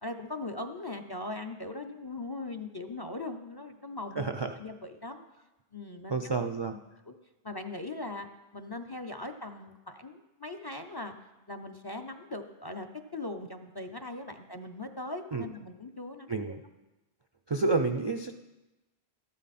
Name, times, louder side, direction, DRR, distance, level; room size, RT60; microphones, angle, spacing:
voice 1, 0.0-4.2 4.6-5.2 5.7-6.3 7.1-7.2 7.4-8.3 8.5-11.1 11.5-12.9 13.1-16.3, left 2 dB, 30° left, 6 dB, 0.5 m, -40 dB
voice 2, 4.2-4.6 6.1-6.7 15.3-15.4 16.3-16.6 17.5-18.3, right 3 dB, 40° right, 6 dB, 0.4 m, -29 dB
13.5 x 11.5 x 4.2 m, 1.1 s
omnidirectional pair, 1.1 m